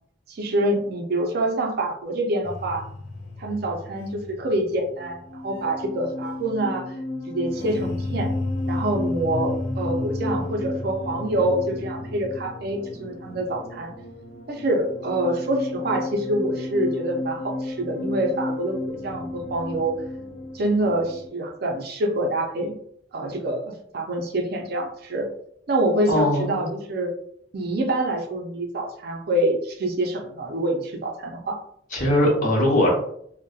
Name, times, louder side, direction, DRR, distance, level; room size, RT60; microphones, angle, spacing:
voice 1, 0.3-2.8 3.4-6.8 7.3-8.3 8.7-13.9 14.5-20.0 20.5-22.8 23.1-25.3 25.7-27.1 27.5-31.6, right 1 dB, 60° right, 2 dB, 0.4 m, -26 dB
sound 1, 2.4-21.3, left 2 dB, 75° left, 0.4 m, -32 dB
voice 2, 26.1-26.7 31.9-32.9, left 1 dB, 50° left, -3 dB, 0.9 m, -20 dB
2.6 x 2.1 x 2.3 m, 0.68 s
head